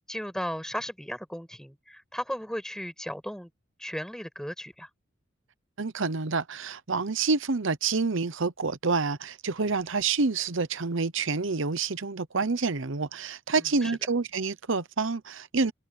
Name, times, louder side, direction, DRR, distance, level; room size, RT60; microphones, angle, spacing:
voice 1, 0.1-3.5 3.8-4.9 13.8-13.9, equal, ahead, 7.1 m, -35 dB
voice 2, 5.8-15.7, right 4 dB, 65° right, 0.9 m, -28 dB
head